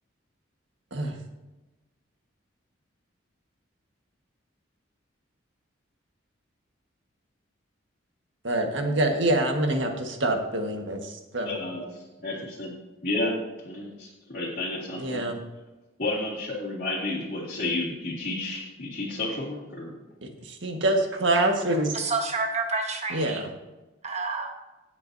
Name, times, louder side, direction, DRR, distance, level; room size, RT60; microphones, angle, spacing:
voice 1, 8.4-11.6 15.0-15.4 20.2-22.0 23.1-23.4, right 1 dB, 65° right, 3 dB, 1.5 m, -26 dB
voice 2, 11.4-12.8 13.0-15.2 16.0-20.1, left 2 dB, 45° left, -7 dB, 2.1 m, -31 dB
voice 3, 21.9-23.5 24.0-24.5, right 4 dB, 35° right, 3 dB, 1.2 m, -29 dB
17.0 x 7.7 x 2.7 m, 1.1 s
head